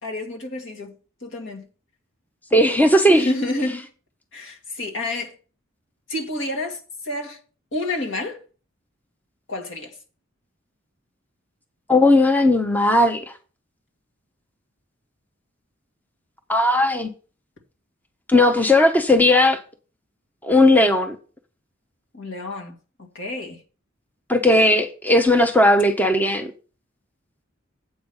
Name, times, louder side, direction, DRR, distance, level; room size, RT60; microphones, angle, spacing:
voice 1, 0.0-0.9 1.2-1.6 3.1-3.8 4.3-5.4 6.1-7.4 7.7-8.4 9.5-9.9 22.1-22.7 23.0-23.6, left 2 dB, 65° left, 2.1 m, -29 dB
voice 2, 2.5-3.3 11.9-13.3 16.5-17.1 18.3-19.6 20.4-21.2 24.3-26.5, left 1 dB, 10° left, 0.7 m, -17 dB
8.0 x 5.1 x 7.0 m
head